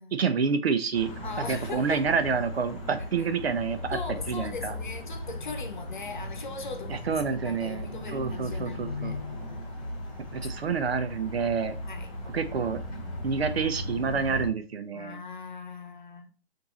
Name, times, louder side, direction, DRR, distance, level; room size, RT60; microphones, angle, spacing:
voice 1, 0.1-1.1 1.5-4.7 6.9-9.1 10.3-11.8 12.3-15.2, right 5 dB, 70° right, 0.8 m, -28 dB
sound 1, 0.9-14.5, left 1 dB, 15° left, 1.1 m, -37 dB
voice 2, 1.2-2.1 3.2-3.3 3.9-9.2 11.8-12.1 14.9-16.3, left 4 dB, 50° left, 0.9 m, -40 dB
6.4 x 2.7 x 3.0 m
hypercardioid pair, 180°, 32 cm